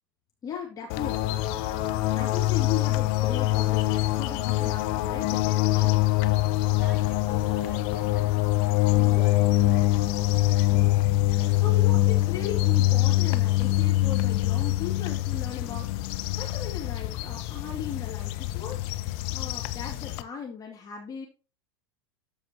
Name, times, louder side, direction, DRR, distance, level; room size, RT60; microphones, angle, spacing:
voice 1, 0.4-1.4 2.1-6.1 6.9-7.1 9.0-9.2 10.7-10.9 11.5-21.3, left 7 dB, 30° left, -1 dB, 2.4 m, -38 dB
sound 1, 0.9-20.2, left 16 dB, 50° left, 0.9 m, -24 dB
voice 2, 6.5-10.7, equal, 10° right, -1 dB, 4.5 m, -49 dB
14.0 x 4.9 x 2.9 m, 0.32 s
figure-of-eight pair, 90°, 13 cm